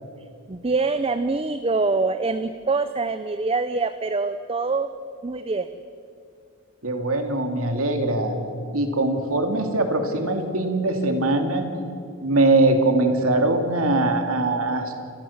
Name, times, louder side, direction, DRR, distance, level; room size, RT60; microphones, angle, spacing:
voice 1, 0.5-4.9 5.2-5.7, right 3 dB, 25° right, 10 dB, 0.6 m, -24 dB
voice 2, 6.8-8.4 8.7-11.7 12.2-14.9, right 2 dB, 75° right, 5 dB, 2.6 m, -22 dB
29.0 x 14.5 x 7.3 m, 2.4 s
head